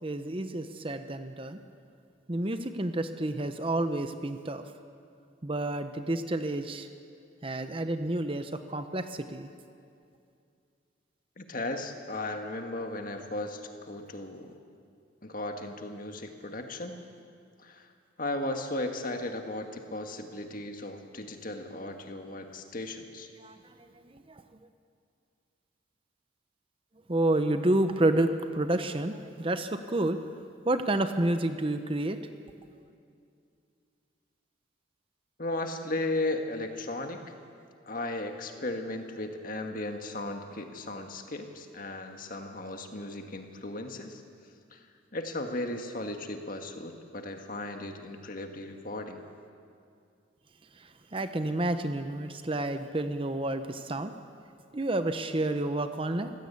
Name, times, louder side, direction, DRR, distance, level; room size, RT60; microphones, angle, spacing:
voice 1, 0.0-1.6 2.3-4.6 5.4-6.9 7.4-9.5 23.4-24.4 27.1-30.3 30.6-32.2 50.7-54.1 54.7-56.3, right 1 dB, 25° right, 9 dB, 0.8 m, -30 dB
voice 2, 11.4-14.5 15.2-17.0 17.6-17.9 18.2-23.3 35.4-37.2 37.9-44.2 44.7-44.8 45.1-49.2, left 2 dB, 45° left, 5 dB, 1.8 m, -36 dB
24.5 x 16.0 x 8.5 m, 2.4 s
head